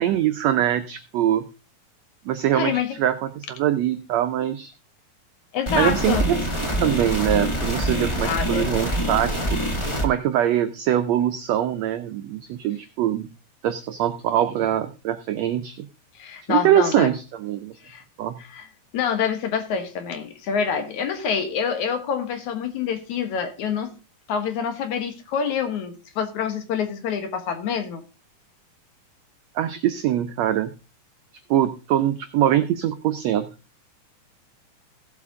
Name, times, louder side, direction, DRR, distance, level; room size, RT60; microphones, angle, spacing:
voice 1, 0.0-1.4 2.2-4.7 5.7-6.4 6.8-9.6 10.0-13.3 13.6-15.9 16.5-17.7 18.2-18.4 29.5-30.7 31.5-33.5, right 11 dB, 80° right, 9 dB, 1.5 m, -23 dB
voice 2, 2.5-2.9 5.5-6.2 8.2-8.8 16.2-17.1 17.8-18.0 18.5-18.7 18.9-23.9 24.3-28.0, left 7 dB, 65° left, 7 dB, 2.7 m, -26 dB
sound 1, 5.7-10.1, equal, 30° left, 0.5 m, -25 dB
16.5 x 7.7 x 3.7 m, 0.31 s
omnidirectional pair, 3.8 m